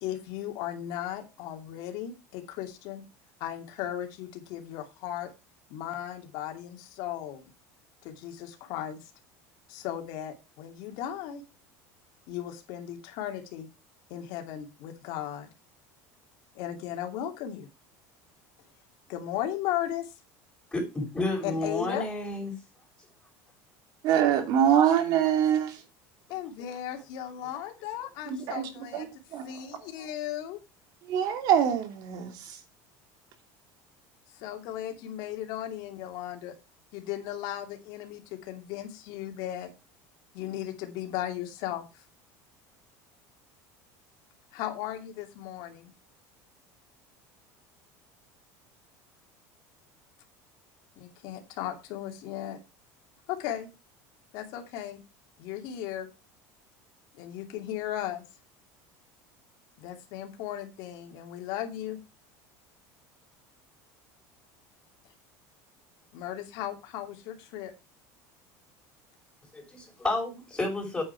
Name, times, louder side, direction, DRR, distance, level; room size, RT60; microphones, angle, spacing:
voice 1, 0.0-3.0 3.4-5.3 5.7-7.5 8.0-9.0 9.7-11.4 12.3-13.7 14.1-15.5 16.5-17.7 19.1-20.1 21.4-22.1 26.3-29.1 29.4-30.6 34.4-36.5 36.9-39.7 40.3-42.0 44.5-45.9 51.0-52.6 53.3-53.7 54.3-55.0 55.4-56.1 57.1-58.2 59.8-62.0 66.1-67.7, left 11 dB, 65° left, 2.7 m, -36 dB
voice 2, 20.7-22.6 69.5-71.0, left 2 dB, 10° left, 6.0 m, -31 dB
voice 3, 24.0-25.8 28.3-29.1 29.3-29.5 31.1-32.6, right 9 dB, 55° right, 2.8 m, -24 dB
8.7 x 8.7 x 4.7 m
cardioid pair, 140°, 8 cm